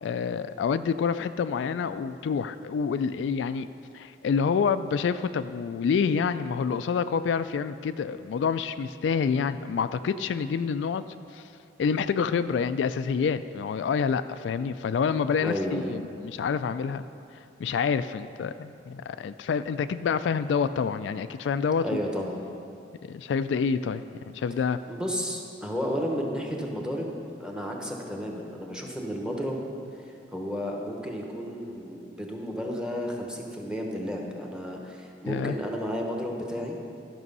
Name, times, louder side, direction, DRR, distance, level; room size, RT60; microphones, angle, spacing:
voice 1, 0.0-3.7 3.9-11.1 11.3-11.4 11.8-17.0 17.6-22.0 23.0-24.0 24.3-24.8 35.3-35.6, left 6 dB, 75° left, 12 dB, 0.3 m, -27 dB
voice 2, 15.4-16.0 21.8-22.4 24.9-29.7 30.3-36.8, equal, 5° right, 0 dB, 1.1 m, -32 dB
12.5 x 6.2 x 5.4 m, 2.5 s
head